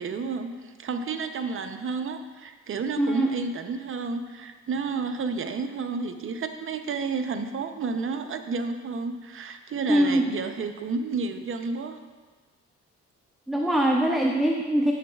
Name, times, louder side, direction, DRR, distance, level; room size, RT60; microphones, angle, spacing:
voice 1, 0.0-12.0, right 4 dB, 45° right, 7 dB, 0.6 m, -31 dB
voice 2, 3.0-3.3 9.9-10.2 13.5-14.9, right 1 dB, ahead, 1 dB, 0.5 m, -22 dB
11.0 x 7.1 x 2.3 m, 1.4 s
cardioid pair, 90°, 30 cm